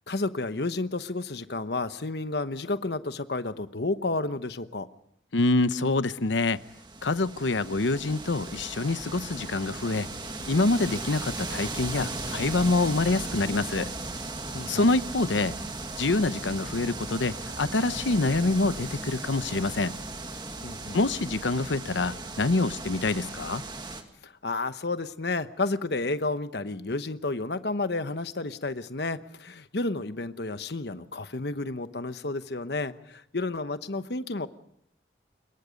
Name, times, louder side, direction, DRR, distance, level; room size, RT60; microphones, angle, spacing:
voice 1, 0.1-4.9 14.5-14.9 20.6-21.0 24.2-34.5, left 2 dB, 65° left, 1.1 m, -31 dB
voice 2, 5.3-6.6 7.0-10.1 10.5-13.9 14.7-15.5 16.0-19.9 20.9-23.6, left 2 dB, 90° left, 0.9 m, -26 dB
sound 1, 6.4-24.0, right 2 dB, 25° right, 1.9 m, -37 dB
26.0 x 22.0 x 5.2 m
head